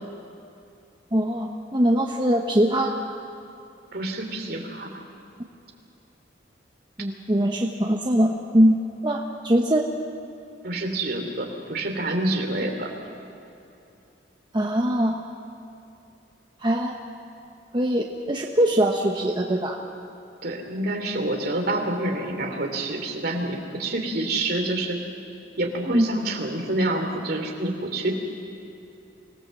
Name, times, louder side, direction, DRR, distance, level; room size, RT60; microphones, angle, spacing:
voice 1, 1.1-2.9 7.0-9.9 14.5-15.2 16.6-17.0 17.7-19.8 25.9-26.1, right 1 dB, 25° right, 1 dB, 1.0 m, -22 dB
voice 2, 3.9-5.0 10.6-12.9 20.4-25.0 25.6-28.1, right 1 dB, 55° right, 3 dB, 2.9 m, -27 dB
25.5 x 18.0 x 7.6 m, 2.7 s
head